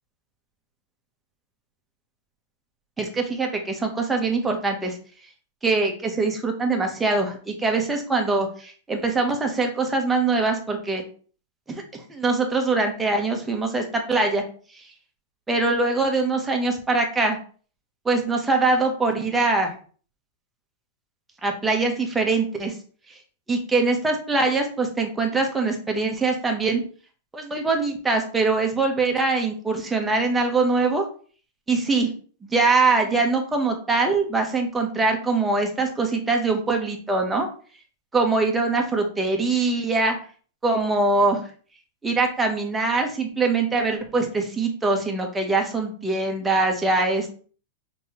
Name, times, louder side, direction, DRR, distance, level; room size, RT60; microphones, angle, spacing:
voice 1, 3.0-5.0 5.6-11.0 11.7-14.4 15.5-17.4 18.0-19.7 21.4-22.7 23.5-26.8 27.3-31.0 31.7-32.1 32.4-37.5 38.1-40.2 40.6-41.4 42.0-47.3, right 3 dB, 10° right, 3 dB, 0.9 m, -23 dB
5.4 x 2.9 x 2.9 m, 0.42 s
supercardioid pair, 150°, 0 cm